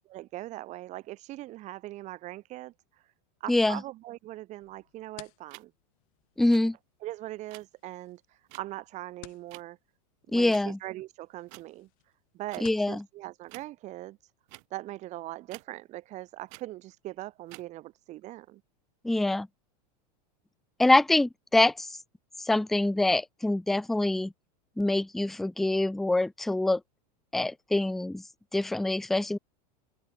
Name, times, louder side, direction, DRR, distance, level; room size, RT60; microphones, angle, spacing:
voice 1, 0.1-2.7 3.4-5.7 7.0-9.8 10.3-11.9 12.3-14.2 14.7-18.6, right 16 dB, 35° right, 1.7 m, -41 dB
voice 2, 3.5-3.8 6.4-6.8 10.3-10.8 12.6-13.0 19.0-19.5 20.8-22.0 22.4-24.3 24.8-26.8 27.3-28.2 28.5-29.4, left 2 dB, ahead, 0.3 m, -25 dB
sound 1, 4.6-12.9, left 26 dB, 60° left, 7.8 m, -57 dB
sound 2, 5.5-5.6 6.5-6.6 7.5-7.6 8.5-8.6 9.5-9.6 10.5-10.7 11.5-11.6 12.5-12.6 13.5-13.7 14.5-14.7 15.5-15.6 16.5-16.6 17.5-17.7, right 35 dB, 55° right, 4.7 m, -48 dB
open air
supercardioid pair, 145°, 20 cm